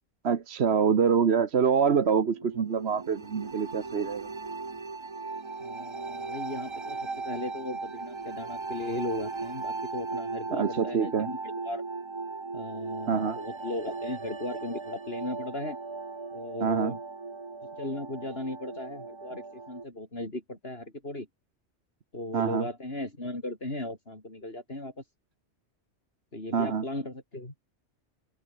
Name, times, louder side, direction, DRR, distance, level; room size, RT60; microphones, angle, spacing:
voice 1, 0.2-4.3 10.5-11.3 13.1-13.4 16.6-16.9 22.3-22.7 26.5-26.8, right 6 dB, 65° right, 1.4 m, -25 dB
sound 1, 1.8-19.8, right 3 dB, 25° right, 1.0 m, -38 dB
voice 2, 5.6-11.8 12.5-15.8 16.3-17.0 17.8-21.3 22.1-24.9 26.3-27.5, left 1 dB, 60° left, 6.5 m, -37 dB
omnidirectional pair, 1.2 m